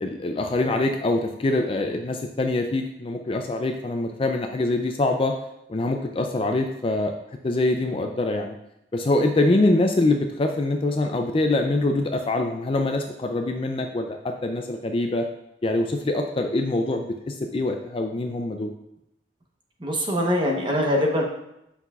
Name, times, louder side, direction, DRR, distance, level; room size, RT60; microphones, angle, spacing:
voice 1, 0.0-5.3 5.7-7.1 7.4-8.6 8.9-15.2 15.6-18.7, left 2 dB, 30° left, 4 dB, 0.4 m, -24 dB
voice 2, 19.8-21.2, left 1 dB, 25° right, 0 dB, 1.0 m, -23 dB
8.0 x 5.7 x 2.4 m, 0.84 s
head